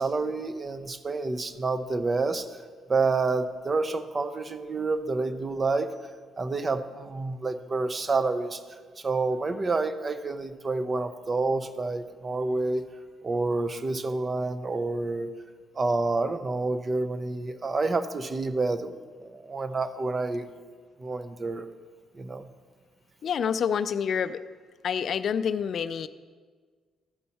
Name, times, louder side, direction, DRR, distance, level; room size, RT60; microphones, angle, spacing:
voice 1, 0.0-2.6 2.9-5.9 6.4-8.6 9.0-12.8 13.2-15.3 15.7-19.0 19.2-20.5 21.0-21.7 22.1-22.5, right 3 dB, 30° right, 11 dB, 0.6 m, -28 dB
voice 2, 23.2-24.4 24.8-26.1, left 7 dB, 60° left, 12 dB, 0.3 m, -27 dB
14.0 x 5.5 x 4.2 m, 1.5 s
cardioid pair, 90°, 0 cm